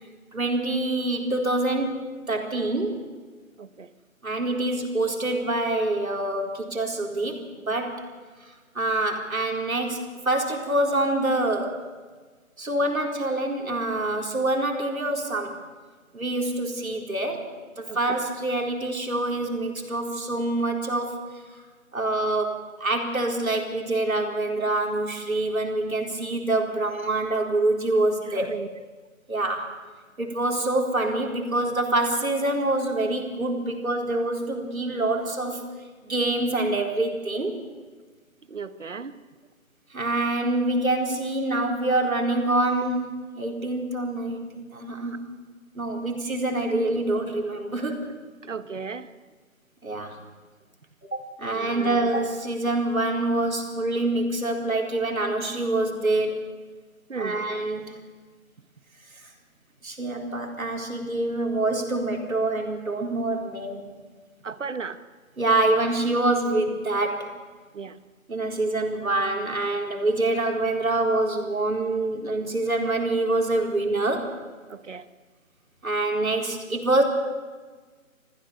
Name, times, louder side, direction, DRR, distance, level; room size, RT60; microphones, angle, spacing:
voice 1, 0.3-3.0 4.2-8.0 8.7-11.9 12.6-15.6 16.1-17.5 17.8-21.2 21.9-28.6 29.3-29.7 30.2-35.7 36.0-37.6 39.9-45.4 45.7-48.1 49.8-50.2 51.0-56.4 57.2-57.9 59.8-63.9 65.4-67.4 68.3-74.3 75.8-77.0, right 2 dB, 80° right, 2 dB, 4.2 m, -26 dB
voice 2, 3.6-3.9 17.9-18.2 28.2-28.7 38.5-39.2 45.0-45.1 48.4-49.1 51.5-52.1 57.1-57.4 64.4-65.0 67.7-68.0 74.7-75.1, right 5 dB, 60° right, 13 dB, 1.4 m, -36 dB
25.0 x 15.5 x 6.9 m, 1.4 s
figure-of-eight pair, 160°, 41 cm